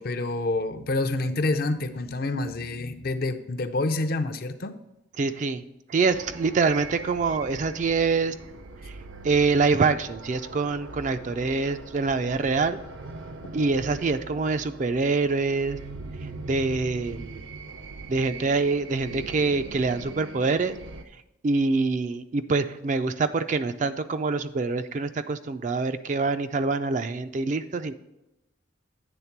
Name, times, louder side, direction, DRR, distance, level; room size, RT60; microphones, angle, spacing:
voice 1, 0.0-4.8, left 2 dB, 50° left, 9 dB, 0.5 m, -28 dB
voice 2, 5.2-5.6 5.9-8.3 8.8-9.0 9.2-12.8 13.5-15.8 16.2-17.4 18.1-20.8 21.4-27.9, right 4 dB, 40° right, 11 dB, 0.3 m, -25 dB
sound 1, 6.1-21.0, right 3 dB, 75° right, 0.6 m, -41 dB
8.8 x 3.6 x 5.8 m, 0.92 s
head